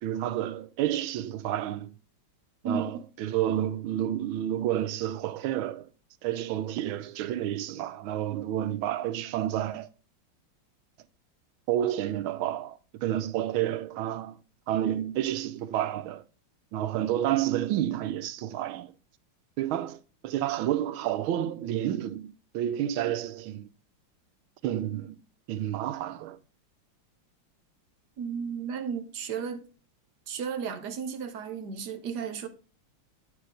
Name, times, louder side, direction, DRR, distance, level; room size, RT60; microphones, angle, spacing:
voice 1, 0.0-1.9 2.6-5.9 6.2-9.9 11.7-14.4 14.7-16.2 16.7-18.9 19.6-23.7 24.6-25.1 25.5-26.4, right 12 dB, 80° right, 1.4 m, -30 dB
voice 2, 2.6-3.0 28.2-29.6 30.3-32.5, right 6 dB, 60° right, 1.3 m, -34 dB
9.6 x 4.7 x 3.8 m
omnidirectional pair, 2.3 m